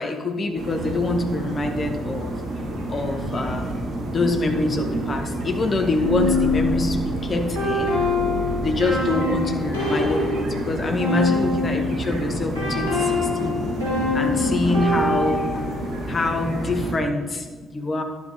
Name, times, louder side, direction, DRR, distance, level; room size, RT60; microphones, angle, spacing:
voice 1, 0.0-2.3 2.9-3.7 4.1-8.0 8.6-13.6 14.1-15.7 16.1-18.0, left 2 dB, 40° left, 4 dB, 1.9 m, -25 dB
sound 1, 0.5-17.0, right 1 dB, 55° right, 2.8 m, -29 dB
sound 2, 6.0-12.0 12.5-15.8, left 2 dB, 90° right, 3.8 m, -24 dB
12.0 x 10.0 x 5.2 m, 1.4 s
figure-of-eight pair, 45°, 0 cm